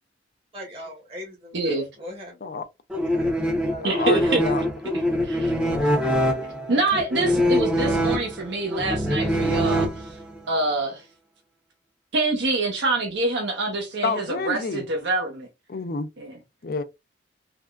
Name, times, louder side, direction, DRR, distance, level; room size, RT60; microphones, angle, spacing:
voice 1, 0.5-2.5 2.9-3.9, left 1 dB, 30° right, 1.0 m, -40 dB
voice 2, 1.5-1.8 3.8-4.4 5.2-5.5 6.7-10.2 10.5-11.0 12.1-15.5 16.2-16.3, right 2 dB, 70° right, 0.8 m, -25 dB
sound 1, 2.9-10.4, equal, 5° right, 0.6 m, -24 dB
voice 3, 3.8-4.6 14.0-14.8 15.7-16.1 16.6-16.8, left 4 dB, 55° left, 0.5 m, -28 dB
3.4 x 2.1 x 2.3 m
head